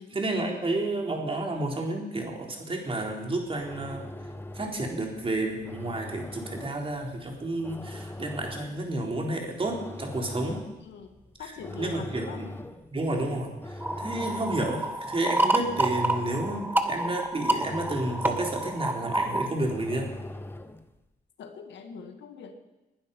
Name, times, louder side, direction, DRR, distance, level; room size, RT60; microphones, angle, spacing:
voice 1, 0.0-4.1 4.5-10.6 11.8-12.5 12.9-20.1, right 2 dB, 30° right, 1 dB, 3.7 m, -31 dB
sound 1, 3.4-21.0, left 1 dB, 10° left, 1.0 m, -42 dB
voice 2, 10.8-12.4 14.0-14.1 21.4-22.5, left 6 dB, 90° left, 5 dB, 1.9 m, -43 dB
sound 2, 13.8-19.5, right 1 dB, 10° right, 1.4 m, -29 dB
20.5 x 11.5 x 5.4 m, 1.0 s
cardioid pair, 90°, 18 cm